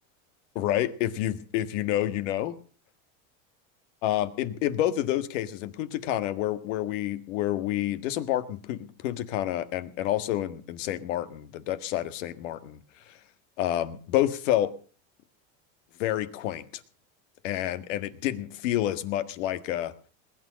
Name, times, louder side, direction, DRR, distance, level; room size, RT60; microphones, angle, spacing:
voice 1, 0.5-2.6 4.0-12.8 13.1-13.2 13.6-14.7 16.0-16.8 17.4-19.9, left 13 dB, 75° left, 11 dB, 1.8 m, -29 dB
20.5 x 9.3 x 6.4 m, 0.41 s
supercardioid pair, 135°, 38 cm